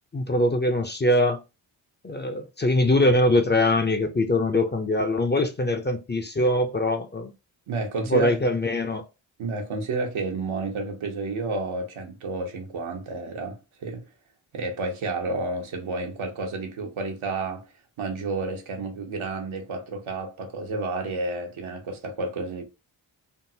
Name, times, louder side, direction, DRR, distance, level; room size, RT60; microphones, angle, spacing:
voice 1, 0.1-1.4 2.0-7.3 8.1-9.0, left 1 dB, 25° left, 0.5 m, -22 dB
voice 2, 7.7-8.4 9.4-14.0 14.5-17.6 18.0-22.6, right 3 dB, 80° right, 1.0 m, -30 dB
3.6 x 2.0 x 2.7 m
cardioid pair, 60°, 48 cm